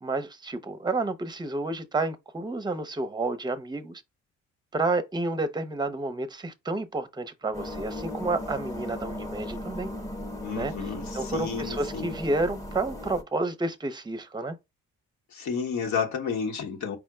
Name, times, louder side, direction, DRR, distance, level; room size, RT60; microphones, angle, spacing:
voice 1, 0.0-4.0 4.7-9.9 10.6-10.7 11.1-14.6, right 2 dB, 15° right, 0.7 m, -30 dB
sound 1, 7.5-13.2, left 1 dB, 10° left, 1.1 m, -37 dB
voice 2, 10.4-12.2 15.3-17.0, left 6 dB, 65° left, 1.1 m, -31 dB
4.9 x 2.1 x 4.7 m
cardioid pair, 90°, 30 cm